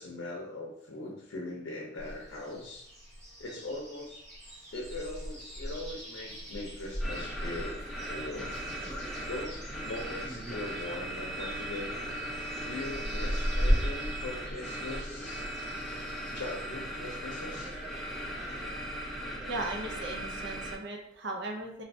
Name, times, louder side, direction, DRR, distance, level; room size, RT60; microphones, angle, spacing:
voice 1, 0.0-2.9 3.4-4.2 4.7-7.8 8.1-8.5 8.8-9.0 9.3-12.0 12.6-15.4 16.3-17.7, left 2 dB, 85° left, -3 dB, 0.6 m, -40 dB
sound 1, 2.0-18.7, equal, 35° right, 1.3 m, -38 dB
sound 2, 7.0-20.8, right 1 dB, ahead, 0.4 m, -38 dB
voice 2, 19.5-21.8, right 2 dB, 60° right, 2 dB, 0.5 m, -37 dB
3.1 x 2.6 x 2.6 m, 0.73 s
head